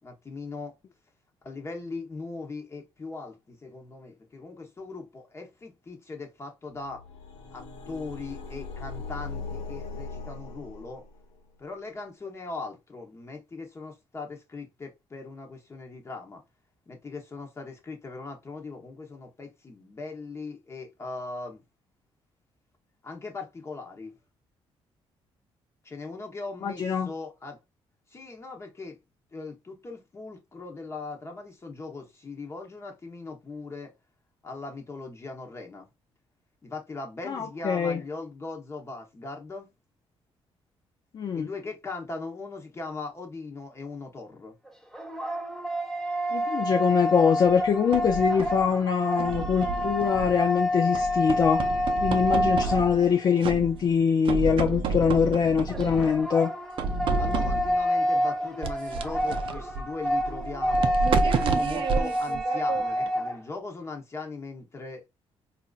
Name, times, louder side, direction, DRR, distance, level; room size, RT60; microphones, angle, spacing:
voice 1, 0.0-0.7 1.4-7.0 7.5-11.0 11.6-16.4 16.9-21.6 23.0-24.2 25.8-27.6 28.1-29.0 29.3-33.9 34.4-35.9 36.6-39.7 41.3-44.6 57.2-65.0, left 3 dB, 25° left, 1.0 m, -39 dB
sound 1, 6.7-11.4, left 4 dB, 70° left, 1.1 m, -39 dB
voice 2, 26.6-27.1 37.3-38.0 41.1-41.5 46.3-51.7 52.0-56.5, left 6 dB, 40° left, 0.4 m, -23 dB
sound 2, 44.7-53.4 55.7-63.4, equal, 5° left, 0.8 m, -28 dB
sound 3, 47.4-48.7 49.2-50.5 50.9-53.1 53.4-54.0 54.2-56.2 56.8-57.9 58.6-63.1, right 4 dB, 55° right, 0.5 m, -30 dB
4.3 x 2.6 x 2.4 m
cardioid pair, 115°, 10 cm